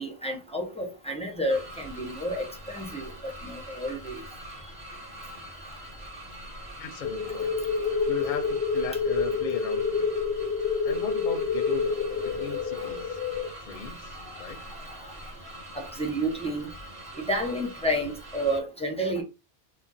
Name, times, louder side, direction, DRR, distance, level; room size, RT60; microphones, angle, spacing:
voice 1, 0.0-4.2 15.7-16.7 17.3-19.2, equal, 10° left, 0.4 m, -30 dB
sound 1, 1.5-18.6, equal, 35° right, 0.9 m, -43 dB
voice 2, 6.8-7.6 8.1-10.1 10.8-12.0 12.2-13.2 13.6-14.6, left 6 dB, 60° left, 0.6 m, -38 dB
sound 2, 7.0-13.5, left 5 dB, 90° left, 0.8 m, -28 dB
2.3 x 2.2 x 3.9 m
omnidirectional pair, 1.0 m